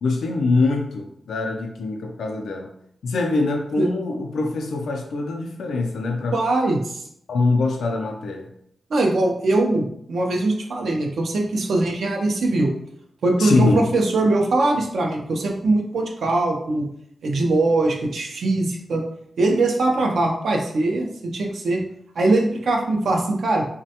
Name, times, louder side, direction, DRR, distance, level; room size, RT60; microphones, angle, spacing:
voice 1, 0.0-2.7 3.0-6.4 7.3-8.5 13.4-13.9, left 3 dB, 90° left, 2 dB, 0.3 m, -23 dB
voice 2, 6.3-7.0 8.9-12.7 13.2-16.9 17.2-19.0 19.4-21.8 22.2-23.7, right 2 dB, 75° right, 1 dB, 0.4 m, -21 dB
3.2 x 2.1 x 2.7 m, 0.71 s
wide cardioid pair, 100°, 0 cm